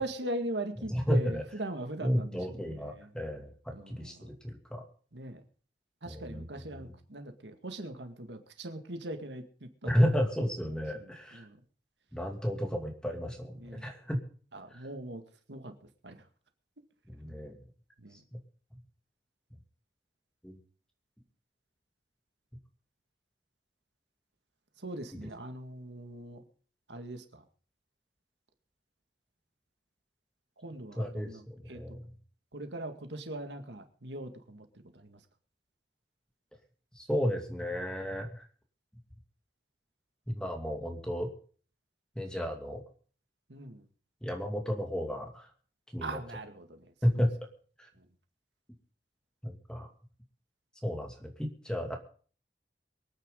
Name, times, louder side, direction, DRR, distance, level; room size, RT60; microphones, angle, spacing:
voice 1, 0.0-3.1 3.7-4.3 5.1-5.4 6.0-9.9 11.3-11.6 13.6-13.9 14.5-15.2 15.5-15.7 16.0-16.2 18.0-18.2 24.8-26.4 26.9-27.4 30.6-31.4 31.7-31.8 32.5-34.7 35.0-35.2 43.5-43.8 46.0-46.8, right 1 dB, 85° right, 7 dB, 2.1 m, -40 dB
voice 2, 0.9-1.4 2.0-4.8 6.0-6.9 9.8-11.4 12.1-14.2 14.7-14.8 17.1-17.6 18.3-18.4 20.4-20.6 25.1-25.3 30.9-32.0 37.0-38.4 40.3-41.3 42.2-42.8 44.2-45.5 45.9-46.2 47.0-47.3 47.8-47.9 49.4-49.9 50.8-52.0, equal, 5° left, 3 dB, 2.6 m, -32 dB
23.5 x 9.5 x 3.9 m, 0.42 s
head